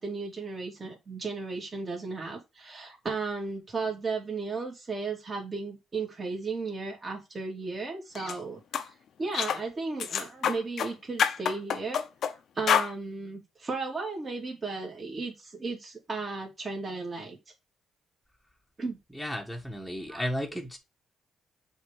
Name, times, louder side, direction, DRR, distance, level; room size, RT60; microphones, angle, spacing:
voice 1, 0.0-8.9 9.2-17.4 18.8-19.0 20.1-20.3, right 4 dB, 35° right, 3.2 m, -35 dB
sound 1, 8.1-8.4 8.7-8.9 9.3-9.6 10.0-10.9 11.2-12.3 12.7-12.9, left 8 dB, 65° left, 0.8 m, -27 dB
voice 2, 19.1-20.8, equal, ahead, 1.5 m, -34 dB
7.0 x 3.6 x 4.9 m
cardioid pair, 90°, 0 cm